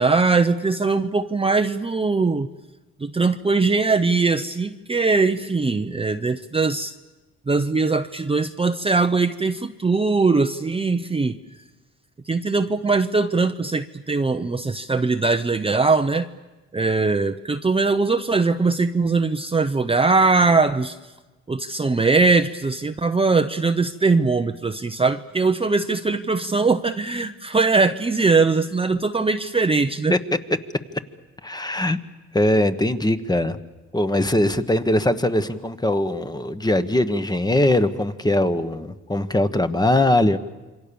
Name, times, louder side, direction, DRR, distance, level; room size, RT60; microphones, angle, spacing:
voice 1, 0.0-2.5 3.0-6.9 7.5-11.3 12.3-16.3 16.7-21.0 21.5-30.1, right 3 dB, 20° right, 7 dB, 0.8 m, -21 dB
voice 2, 31.4-32.0 32.3-33.6 33.9-40.4, left 1 dB, 15° left, 10 dB, 1.3 m, -21 dB
27.5 x 24.0 x 7.1 m, 1.1 s
cardioid pair, 90°, 30 cm